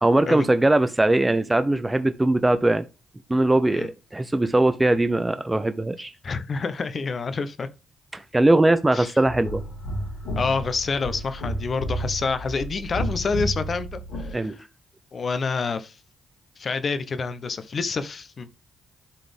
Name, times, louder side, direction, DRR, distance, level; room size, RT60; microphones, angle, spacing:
voice 1, 0.0-2.8 3.3-6.1 8.1-9.6 14.3-14.5, right 2 dB, 20° right, 0.6 m, -20 dB
voice 2, 6.2-7.7 8.9-9.1 10.4-14.6 15.1-16.0 16.6-18.5, left 4 dB, 50° left, 0.9 m, -28 dB
sound 1, 9.3-14.3, right 1 dB, 80° left, 4.1 m, -31 dB
11.5 x 4.0 x 3.4 m
hypercardioid pair, 45°, 0 cm